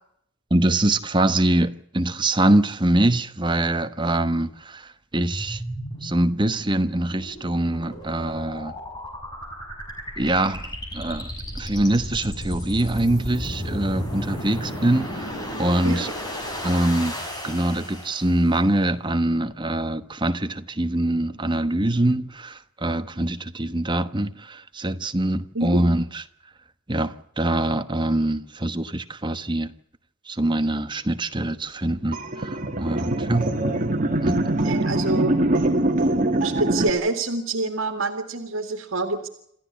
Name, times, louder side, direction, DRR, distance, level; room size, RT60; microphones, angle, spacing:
voice 1, 0.5-5.6 6.0-8.7 10.2-11.3 11.5-16.1 16.6-17.2 17.4-26.2 26.9-29.7 30.3-33.5 34.2-34.4, right 1 dB, 20° right, 1.1 m, -24 dB
sound 1, 5.2-18.6, equal, 20° left, 5.9 m, -34 dB
sound 2, 32.1-36.9, right 1 dB, 40° right, 2.0 m, -23 dB
voice 2, 34.6-35.3 36.4-39.3, right 2 dB, 70° right, 2.3 m, -26 dB
27.5 x 14.0 x 8.3 m
head